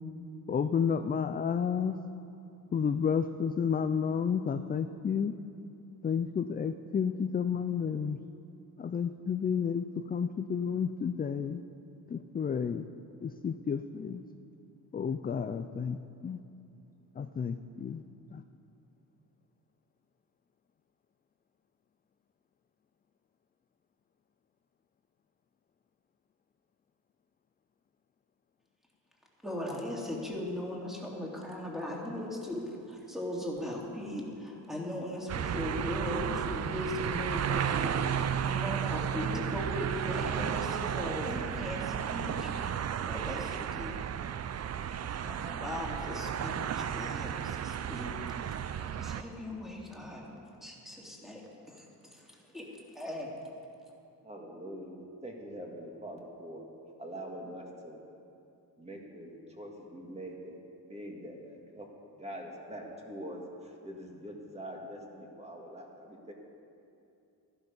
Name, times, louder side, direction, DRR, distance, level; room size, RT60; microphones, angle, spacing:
voice 1, 0.5-2.0 2.7-5.3 6.0-8.2 8.8-11.6 12.1-12.9 13.2-14.2 14.9-16.0 16.2-16.4 17.2-18.0 18.3-18.4, left 7 dB, 25° left, 9 dB, 0.4 m, -31 dB
voice 2, 29.4-42.7 43.1-44.0 45.2-48.1 49.0-52.7 52.9-53.3, left 1 dB, ahead, -3 dB, 2.6 m, -38 dB
sound 1, 35.3-49.2, right 8 dB, 45° right, 0.5 m, -33 dB
voice 3, 54.2-56.7 57.0-58.0 58.8-60.6 60.9-61.5 61.8-66.3, equal, 15° right, 0 dB, 2.0 m, -44 dB
14.5 x 12.0 x 5.3 m, 2.7 s
cardioid pair, 105°, 38 cm